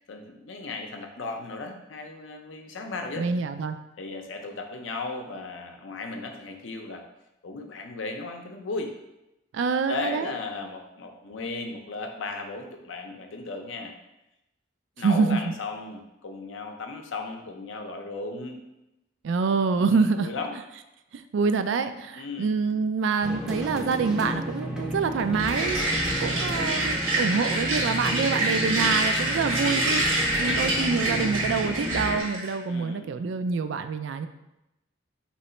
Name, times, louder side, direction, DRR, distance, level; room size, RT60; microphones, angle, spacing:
voice 1, 0.0-3.3 4.0-7.0 7.4-8.9 9.9-13.9 15.0-18.6 19.8-20.5 22.1-22.5 32.7-33.1, left 3 dB, 70° left, 4 dB, 0.6 m, -36 dB
voice 2, 3.2-3.8 9.5-10.3 15.0-15.4 19.2-20.3 21.1-34.3, right 5 dB, 65° right, 10 dB, 0.3 m, -26 dB
sound 1, 23.2-32.2, equal, 5° right, 0.5 m, -32 dB
sound 2, 25.4-32.5, right 1 dB, 80° right, 1.3 m, -27 dB
3.8 x 3.0 x 4.3 m, 0.91 s
head